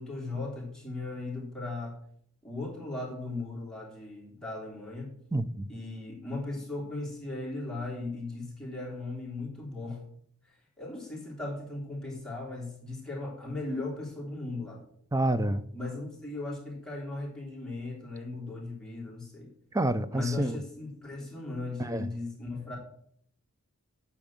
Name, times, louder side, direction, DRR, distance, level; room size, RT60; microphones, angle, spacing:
voice 1, 0.0-2.0 2.4-5.1 5.7-10.0 10.8-14.8 15.7-19.5 20.1-22.8, left 2 dB, 5° left, 3.3 m, -37 dB
voice 2, 5.3-5.7 15.1-15.6 19.7-20.6 21.8-22.1, right 1 dB, 15° right, 0.5 m, -28 dB
8.8 x 5.9 x 7.3 m
head